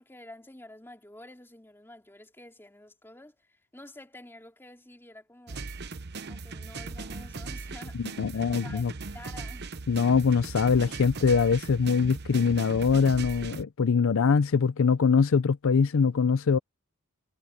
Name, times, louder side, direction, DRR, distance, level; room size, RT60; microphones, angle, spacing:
voice 1, 0.0-5.6 6.3-8.9 9.1-9.7, left 1 dB, 10° left, 3.1 m, -49 dB
sound 1, 5.5-13.6, right 3 dB, 50° right, 0.9 m, -39 dB
voice 2, 8.0-8.9 9.9-16.6, left 5 dB, 60° left, 0.5 m, -23 dB
head